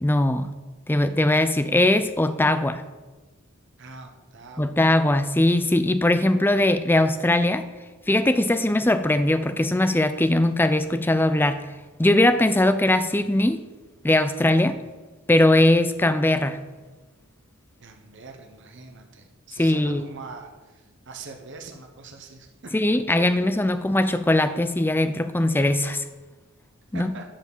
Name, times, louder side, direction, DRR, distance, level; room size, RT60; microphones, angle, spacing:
voice 1, 0.0-0.5 0.9-2.8 4.6-7.6 8.1-11.6 12.0-13.6 14.0-14.7 15.3-16.6 19.6-20.0 22.7-26.0 26.9-27.1, left 1 dB, 10° left, 11 dB, 0.4 m, -20 dB
voice 2, 3.8-4.8 14.5-14.8 17.8-22.5 26.9-27.2, right 4 dB, 55° right, 3 dB, 1.1 m, -43 dB
11.5 x 4.9 x 7.3 m, 1.2 s
head